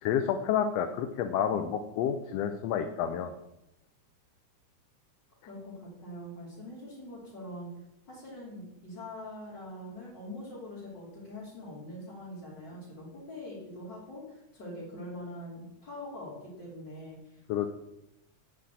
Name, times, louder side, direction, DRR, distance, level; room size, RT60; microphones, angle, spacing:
voice 1, 0.0-3.3 17.5-17.7, left 8 dB, 70° left, 8 dB, 1.7 m, -29 dB
voice 2, 5.5-7.7 8.1-17.4, left 1 dB, 35° left, -8 dB, 3.7 m, -43 dB
12.0 x 5.1 x 8.2 m, 0.86 s
omnidirectional pair, 3.3 m